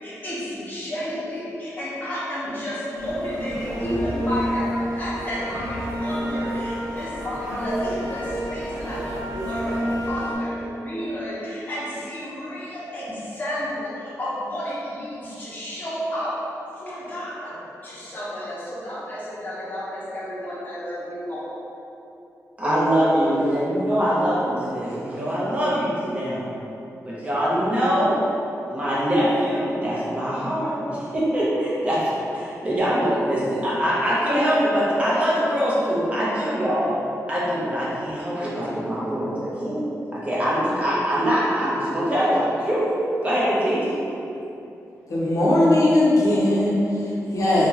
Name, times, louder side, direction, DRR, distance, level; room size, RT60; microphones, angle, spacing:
voice 1, 0.0-16.3 16.7-17.6 17.8-21.5, equal, 25° left, -9 dB, 0.7 m, -31 dB
sound 1, 3.0-10.4, equal, 65° right, 1.0 m, -29 dB
voice 2, 22.6-26.5 27.0-28.3 28.7-36.9 37.3-39.8 40.1-42.9 43.2-43.9, equal, 20° right, -8 dB, 0.7 m, -23 dB
voice 3, 45.1-47.7, left 1 dB, 65° left, -6 dB, 0.7 m, -19 dB
3.7 x 2.3 x 2.8 m, 2.9 s
wide cardioid pair, 150°, 6 cm